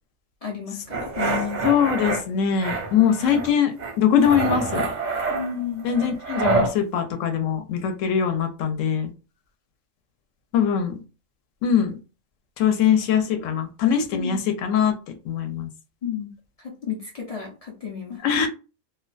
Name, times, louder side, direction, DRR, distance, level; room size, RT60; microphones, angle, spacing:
voice 1, 0.4-1.6 5.3-5.9 14.1-14.4 16.0-16.3 16.6-18.2, left 7 dB, 50° left, -1 dB, 0.4 m, -32 dB
sound 1, 0.9-2.2 2.6-3.5 3.8-6.7, right 3 dB, 50° right, 0.6 m, -27 dB
voice 2, 1.6-4.9 5.8-9.1 10.5-11.0 11.6-12.0 12.6-14.9 15.3-15.7 18.2-18.5, left 8 dB, 75° left, 7 dB, 0.9 m, -22 dB
2.4 x 2.2 x 2.4 m, 0.32 s
omnidirectional pair, 1.4 m